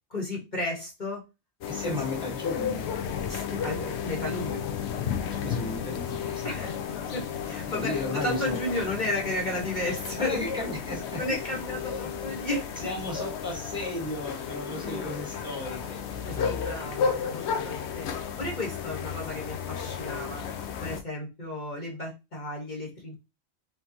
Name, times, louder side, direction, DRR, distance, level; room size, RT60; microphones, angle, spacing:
voice 1, 0.1-1.2 1.8-2.0 3.3-4.6 6.4-6.8 7.1-10.4 11.2-12.7 14.7-15.1 16.3-18.1 18.4-20.4 20.8-23.2, left 1 dB, 45° left, -2 dB, 1.5 m, -33 dB
sound 1, 1.6-21.0, left 7 dB, 80° left, 0.9 m, -33 dB
voice 2, 1.7-2.9 5.3-6.5 6.9-7.0 7.7-8.8 10.2-11.2 11.8-12.1 12.8-17.0, left 2 dB, 5° right, -1 dB, 1.5 m, -35 dB
3.9 x 3.8 x 2.9 m, 0.25 s
omnidirectional pair, 1.1 m